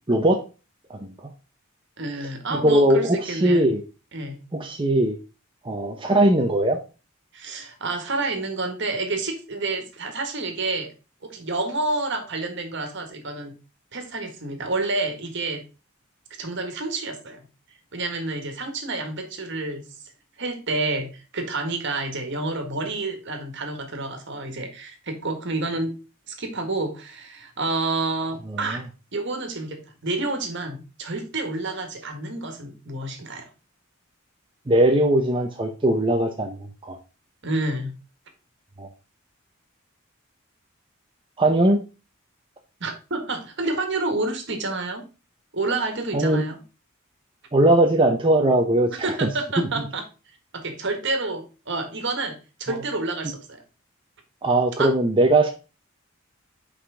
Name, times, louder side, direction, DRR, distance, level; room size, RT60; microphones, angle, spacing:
voice 1, 0.1-0.4 0.9-1.1 2.5-3.8 4.5-5.2 5.6-6.8 28.5-28.8 34.7-37.0 38.8-38.9 41.4-41.8 46.1-46.4 47.5-49.3 49.6-49.7 52.7-52.8 54.4-55.5, right 1 dB, 25° right, 2 dB, 0.7 m, -20 dB
voice 2, 2.0-3.6 4.1-4.4 7.3-10.9 11.2-13.5 13.9-15.6 16.4-17.4 17.9-19.9 20.4-25.9 26.3-28.8 29.1-33.4 37.4-37.9 42.8-45.0 45.5-46.6 48.9-50.0 50.5-53.6 54.8-54.9, right 2 dB, 55° right, 6 dB, 1.7 m, -29 dB
5.8 x 5.0 x 4.8 m, 0.31 s
head